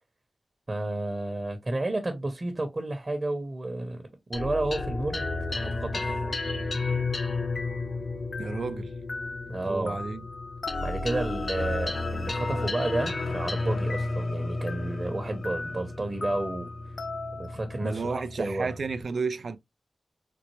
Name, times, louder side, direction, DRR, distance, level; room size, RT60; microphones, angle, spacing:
voice 1, 0.7-4.0 4.3-6.1 9.5-10.0 10.8-16.7 17.4-18.7, right 2 dB, 45° right, 1.0 m, -31 dB
sound 1, 4.3-19.0, left 3 dB, 60° left, 0.5 m, -32 dB
voice 2, 8.4-8.9 9.6-10.2 17.8-19.6, right 4 dB, 80° right, 0.4 m, -32 dB
4.1 x 2.0 x 3.1 m
cardioid pair, 55°, 0 cm